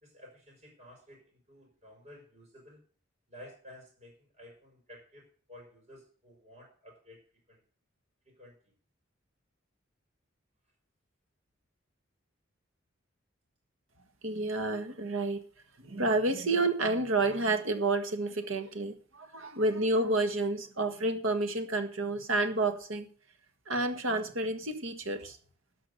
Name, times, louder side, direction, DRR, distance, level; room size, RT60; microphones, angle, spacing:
voice 1, 0.0-2.8 3.3-7.2 7.5-7.6 8.2-8.7, left 1 dB, 35° right, -1 dB, 5.0 m, -53 dB
voice 2, 14.2-15.4 15.8-23.1 23.7-25.4, right 2 dB, 80° right, 7 dB, 1.7 m, -30 dB
11.5 x 6.0 x 7.9 m, 0.42 s
head